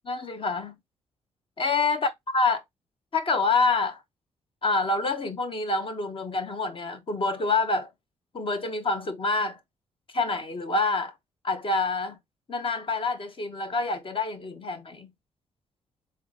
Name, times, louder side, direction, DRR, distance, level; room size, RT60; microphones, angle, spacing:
voice 1, 0.0-0.7 1.6-2.6 3.1-4.0 4.6-7.9 8.3-9.6 10.1-11.1 11.4-12.2 12.5-15.1, left 3 dB, 40° left, 1.1 m, -27 dB
3.7 x 3.2 x 3.6 m
hypercardioid pair, 45°, 14 cm